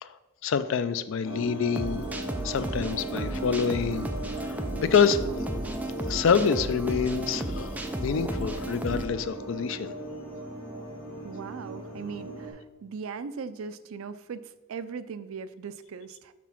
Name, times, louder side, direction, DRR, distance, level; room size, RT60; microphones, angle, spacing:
voice 1, 0.4-2.1 2.4-5.3 6.0-9.9, left 6 dB, 65° left, 13 dB, 0.4 m, -27 dB
sound 1, 1.2-12.5, right 2 dB, 10° left, 2.1 m, -38 dB
sound 2, 1.8-9.1, right 1 dB, 5° right, 0.4 m, -34 dB
voice 2, 11.2-16.3, right 5 dB, 75° right, 13 dB, 0.4 m, -39 dB
6.0 x 3.6 x 5.8 m, 1.1 s
head